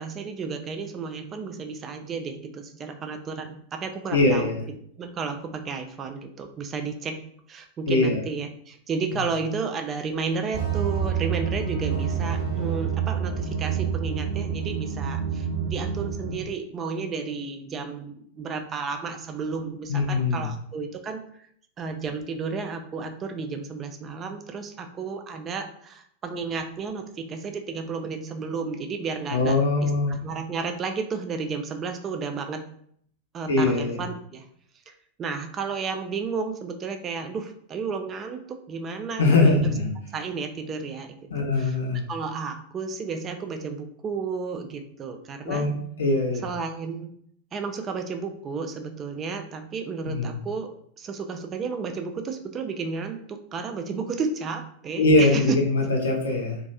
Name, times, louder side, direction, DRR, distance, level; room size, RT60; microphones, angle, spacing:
voice 1, 0.0-4.5 5.0-7.2 7.5-21.2 21.8-32.6 33.3-34.4 34.9-39.8 40.1-41.8 42.1-45.7 46.4-47.2 47.5-50.7 51.0-55.6, right 5 dB, 25° right, 6 dB, 0.3 m, -32 dB
voice 2, 4.1-4.6 7.9-8.2 19.9-20.5 29.3-30.2 33.5-34.0 39.2-39.9 41.3-42.1 45.4-45.7 46.0-46.4 50.0-50.3 55.0-56.6, left 2 dB, 65° left, 1 dB, 0.6 m, -22 dB
sound 1, 10.5-16.4, right 7 dB, 55° right, 0.7 m, -28 dB
2.4 x 2.2 x 2.8 m, 0.65 s
figure-of-eight pair, 90°, 0 cm